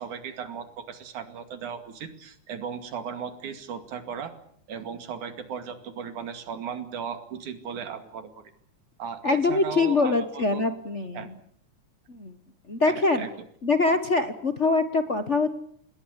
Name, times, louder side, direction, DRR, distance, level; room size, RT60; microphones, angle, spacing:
voice 1, 0.0-4.3 4.7-8.3 9.0-10.6 11.2-11.3 12.9-13.3 13.8-14.0, right 7 dB, 85° right, 9 dB, 3.7 m, -36 dB
voice 2, 9.2-11.4 12.1-12.3 12.7-13.3 13.6-15.5, left 3 dB, 55° left, 9 dB, 0.7 m, -24 dB
27.0 x 20.5 x 8.2 m, 0.64 s
omnidirectional pair, 3.4 m